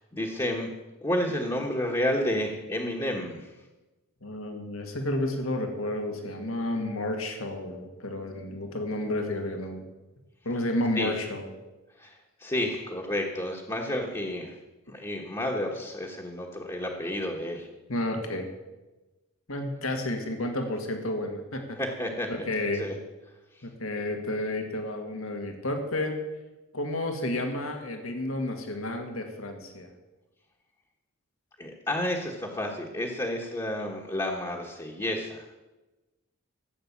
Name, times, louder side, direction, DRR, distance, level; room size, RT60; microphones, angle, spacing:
voice 1, 0.1-0.7 1.0-3.5 10.9-11.1 12.0-14.6 14.9-17.7 21.8-22.3 22.8-22.9 23.5-23.7 31.6-35.4, left 1 dB, 20° left, -2 dB, 1.3 m, -31 dB
voice 2, 4.2-9.8 10.4-11.5 17.9-18.5 19.5-21.8 22.3-22.9 23.6-26.2 26.7-29.9, left 1 dB, 80° left, 4 dB, 1.9 m, -31 dB
14.0 x 8.3 x 7.3 m, 1.1 s
head